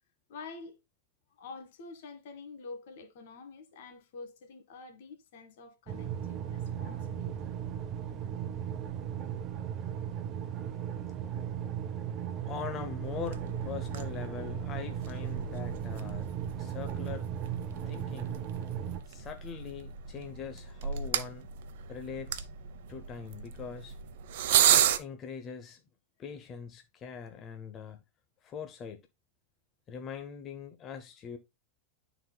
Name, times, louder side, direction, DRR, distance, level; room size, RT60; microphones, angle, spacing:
voice 1, 0.3-0.8 1.4-7.5 11.2-11.3, left 4 dB, 70° left, 1.4 m, -47 dB
sound 1, 5.9-19.0, right 9 dB, 35° right, 0.7 m, -36 dB
voice 2, 12.4-16.3 16.6-17.3 17.9-18.4 19.1-21.5 21.9-22.5 22.9-24.0 24.7-25.8 26.2-28.0 28.4-29.0 29.9-31.4, left 6 dB, 30° left, 0.7 m, -42 dB
sound 2, 13.0-25.0, right 10 dB, 70° right, 0.7 m, -33 dB
11.0 x 4.0 x 2.2 m
supercardioid pair, 140°, 0 cm